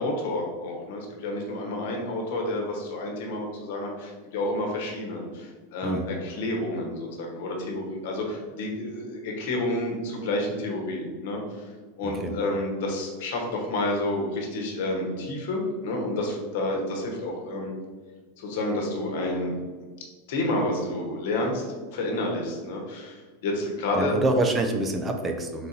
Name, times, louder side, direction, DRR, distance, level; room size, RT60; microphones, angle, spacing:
voice 1, 0.0-11.7 12.0-17.7 18.4-19.6 20.3-21.6 21.9-24.2, left 1 dB, 65° left, 1 dB, 1.1 m, -29 dB
voice 2, 23.9-25.7, right 2 dB, 20° right, 5 dB, 0.4 m, -26 dB
3.9 x 2.6 x 4.1 m, 1.4 s
supercardioid pair, 135°, 0 cm